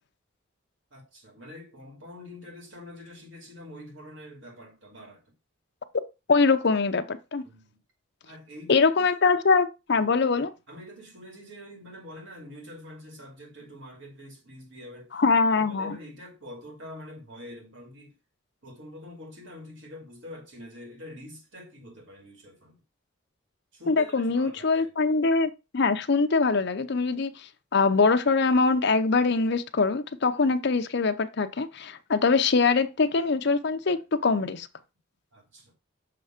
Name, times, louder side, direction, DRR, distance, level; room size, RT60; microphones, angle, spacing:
voice 1, 0.9-5.2 7.4-7.8 8.2-8.9 10.7-15.2 15.5-18.2 18.6-22.8 23.7-24.9 35.3-35.7, left 1 dB, 65° right, 2.5 m, -45 dB
voice 2, 6.3-7.4 8.7-10.5 15.1-16.0 23.9-34.7, left 4 dB, 55° left, 0.6 m, -23 dB
6.8 x 3.3 x 5.1 m
head